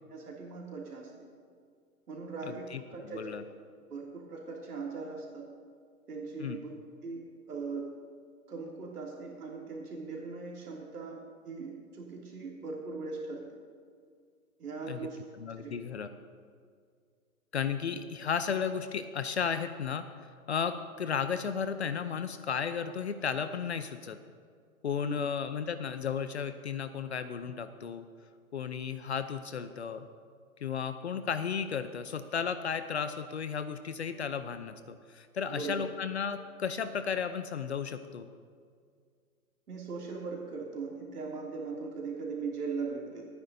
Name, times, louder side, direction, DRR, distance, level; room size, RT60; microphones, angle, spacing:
voice 1, 0.1-1.3 2.1-3.4 3.9-5.5 6.1-6.7 7.0-7.9 8.5-11.2 11.4-13.4 14.6-15.2 15.6-15.7 25.0-25.3 35.5-35.8 39.7-43.3, right 4 dB, 80° right, -2 dB, 2.7 m, -39 dB
voice 2, 2.4-2.8 3.1-3.4 6.4-6.6 14.9-15.1 15.4-16.1 17.5-24.2 24.8-28.1 28.5-30.1 30.6-38.3, left 6 dB, 50° left, 10 dB, 0.6 m, -34 dB
27.0 x 9.7 x 2.7 m, 2.1 s
hypercardioid pair, 160°, 45 cm